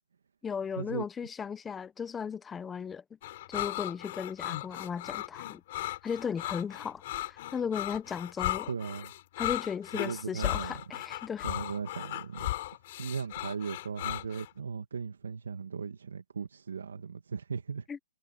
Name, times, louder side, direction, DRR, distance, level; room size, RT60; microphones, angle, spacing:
voice 1, 0.4-3.0 3.5-5.6 6.0-8.7 9.4-11.5 17.9-18.0, left 7 dB, 10° left, 0.8 m, -36 dB
sound 1, 3.2-14.5, left 15 dB, 45° left, 5.3 m, -36 dB
voice 2, 8.7-9.1 9.9-10.7 11.4-12.5 13.0-17.9, right 6 dB, 90° right, 2.1 m, -37 dB
hypercardioid pair, 155°, 0 cm